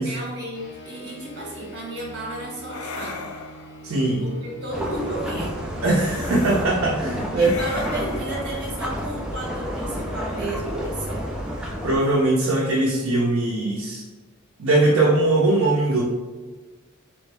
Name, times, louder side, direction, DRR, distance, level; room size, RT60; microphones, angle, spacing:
voice 1, 0.0-3.3 4.2-5.6 7.4-11.3, right 1 dB, 55° right, -2 dB, 1.3 m, -33 dB
sound 1, 0.5-10.3, right 2 dB, 65° left, 0.8 m, -45 dB
sound 2, 1.5-1.8 2.7-3.9 5.8-6.7 7.4-9.6, left 5 dB, 80° left, 0.4 m, -39 dB
voice 2, 3.8-4.3 5.8-7.6 11.6-14.0 14.6-16.0, right 2 dB, 75° right, -3 dB, 0.6 m, -21 dB
sound 3, 4.7-12.0, equal, 5° right, 0.4 m, -30 dB
3.4 x 3.1 x 3.3 m, 1.3 s
head